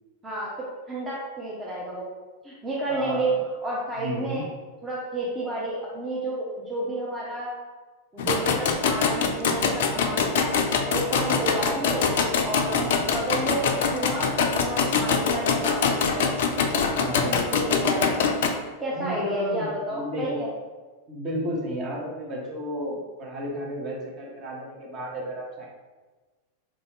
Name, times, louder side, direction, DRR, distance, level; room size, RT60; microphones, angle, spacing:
voice 1, 0.9-2.1 2.4-3.3 3.6-4.4 4.8-7.6 8.1-10.5 10.9-12.1 12.4-12.8 13.1-16.4 17.5-18.2 18.8-20.5, right 1 dB, 15° right, -6 dB, 0.7 m, -31 dB
voice 2, 2.9-3.4 4.0-4.4 11.2-11.4 12.7-13.0 16.9-17.6 18.9-20.2 21.1-25.7, equal, 35° right, -3 dB, 1.0 m, -33 dB
sound 1, 8.2-18.5, left 5 dB, 55° left, 0.4 m, -24 dB
3.6 x 2.6 x 3.2 m, 1.3 s
figure-of-eight pair, 90°, 0 cm